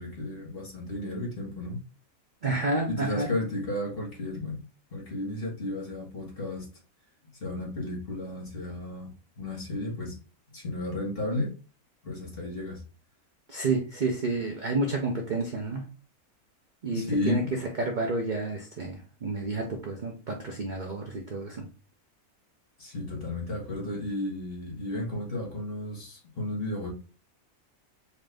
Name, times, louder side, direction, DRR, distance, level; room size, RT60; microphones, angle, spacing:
voice 1, 0.0-1.8 2.9-4.6 4.9-6.7 7.4-10.2 10.5-11.5 12.0-12.8 16.9-17.5 22.8-26.9, left 1 dB, 40° left, 1.6 m, -33 dB
voice 2, 2.4-3.3 13.5-15.8 16.8-17.4 17.8-21.6, right 3 dB, 50° right, 0.6 m, -30 dB
4.1 x 2.6 x 3.3 m
omnidirectional pair, 1.6 m